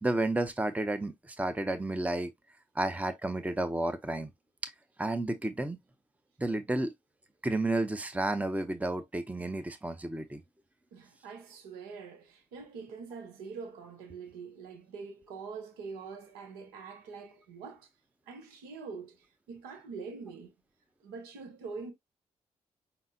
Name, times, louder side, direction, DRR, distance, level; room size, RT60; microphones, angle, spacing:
voice 1, 0.0-2.3 2.7-4.3 4.6-4.7 5.0-5.8 6.4-6.9 7.4-10.4, right 2 dB, 10° right, 0.7 m, -31 dB
voice 2, 10.9-17.9 18.3-20.5 21.0-21.9, right 5 dB, 80° right, 0.9 m, -44 dB
5.4 x 2.8 x 2.7 m
hypercardioid pair, 40°, 15 cm